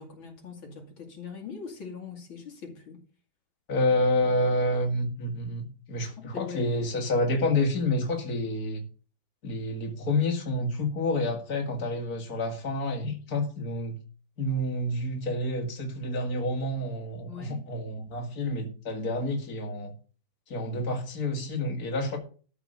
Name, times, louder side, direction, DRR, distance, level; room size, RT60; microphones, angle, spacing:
voice 1, 0.0-3.0 6.2-6.7 17.3-17.6, left 5 dB, 80° left, 3.2 m, -42 dB
voice 2, 3.7-8.8 9.4-14.0 14.4-19.9 20.5-22.2, left 1 dB, 50° left, 2.7 m, -28 dB
13.0 x 5.4 x 6.6 m
omnidirectional pair, 2.2 m